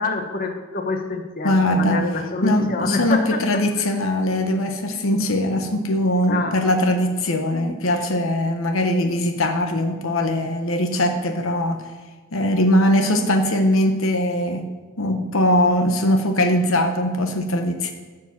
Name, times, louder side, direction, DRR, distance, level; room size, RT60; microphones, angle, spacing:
voice 1, 0.0-3.6 6.3-6.6, left 3 dB, 45° left, 4 dB, 1.1 m, -26 dB
voice 2, 1.4-2.1 2.4-11.9 12.3-17.9, left 1 dB, 70° left, 5 dB, 1.0 m, -21 dB
13.5 x 4.9 x 7.4 m, 1.4 s
head